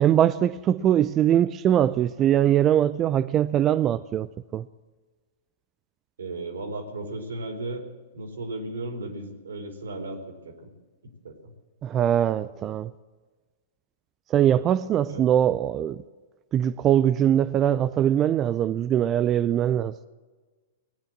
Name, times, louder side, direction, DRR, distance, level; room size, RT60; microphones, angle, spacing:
voice 1, 0.0-4.3 4.5-4.7 11.8-12.9 14.3-16.0 16.5-19.9, right 10 dB, 30° right, 0.4 m, -22 dB
voice 2, 6.2-7.8 8.1-10.7 11.2-11.5 15.1-15.2, right 2 dB, 80° right, 3.2 m, -35 dB
18.5 x 9.1 x 7.5 m
hypercardioid pair, 115°, 0 cm